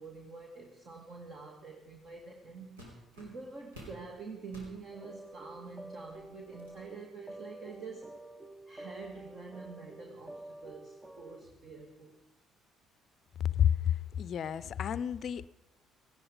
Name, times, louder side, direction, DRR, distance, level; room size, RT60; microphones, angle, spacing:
voice 1, 0.0-8.2 8.7-12.2, right 4 dB, 45° right, 1 dB, 2.0 m, -47 dB
sound 1, 2.1-2.2 2.8-4.0 4.4-4.8 5.5-5.6 6.0-6.8, equal, 75° right, 3.3 m, -51 dB
sound 2, 4.9-11.4, right 1 dB, 20° right, 0.9 m, -49 dB
voice 2, 13.4-15.5, left 9 dB, 45° left, 18 dB, 0.5 m, -30 dB
18.0 x 15.0 x 5.1 m, 0.88 s
figure-of-eight pair, 50°, 0 cm